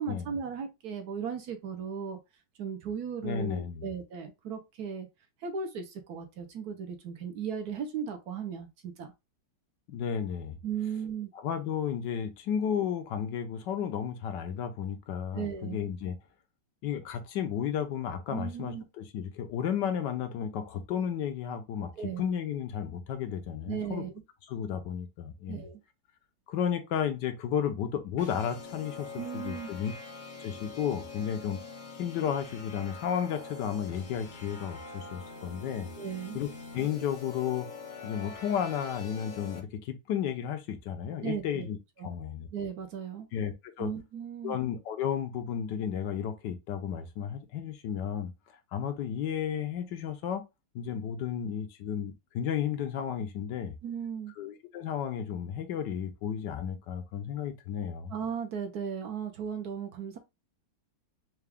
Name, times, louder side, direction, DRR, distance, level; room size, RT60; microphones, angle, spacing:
voice 1, 0.0-2.2 2.6-5.1 5.4-9.1 10.6-11.3 15.3-15.8 18.3-18.8 22.0-22.2 23.7-24.1 25.5-25.8 29.2-29.7 36.0-36.4 41.2-41.7 42.0-42.1 42.5-43.3 43.8-44.6 53.8-54.3 58.1-60.2, right 7 dB, 65° right, 1.2 m, -36 dB
voice 2, 3.2-3.9 9.9-10.6 11.4-16.2 16.8-21.9 22.2-24.0 24.5-25.7 26.5-29.1 29.3-29.9 30.4-31.6 32.0-35.9 36.3-37.7 38.0-41.8 42.0-42.5 43.3-43.9 44.4-48.3 48.7-50.4 50.7-53.7 54.4-58.1, left 8 dB, 80° left, 1.3 m, -33 dB
sound 1, 28.2-39.6, left 4 dB, 35° left, 0.8 m, -44 dB
4.7 x 2.3 x 3.4 m
omnidirectional pair, 1.9 m